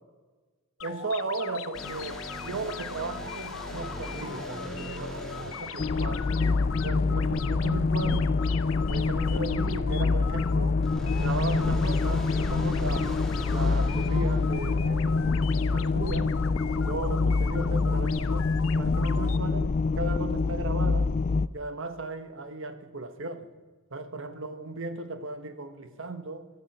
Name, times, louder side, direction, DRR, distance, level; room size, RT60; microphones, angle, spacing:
sound 1, 0.8-19.4, left 7 dB, 75° left, 0.7 m, -40 dB
voice 1, 0.8-6.3 6.8-8.3 8.9-10.8 11.2-13.1 13.5-16.3 16.7-18.5 18.7-21.1 21.5-23.5 23.9-26.5, right 3 dB, 65° right, 9 dB, 1.3 m, -36 dB
sound 2, 1.7-7.2 10.7-15.5, equal, ahead, 2.4 m, -41 dB
sound 3, 5.8-21.5, left 4 dB, 35° left, 0.3 m, -26 dB
16.0 x 12.5 x 6.0 m, 1.3 s
head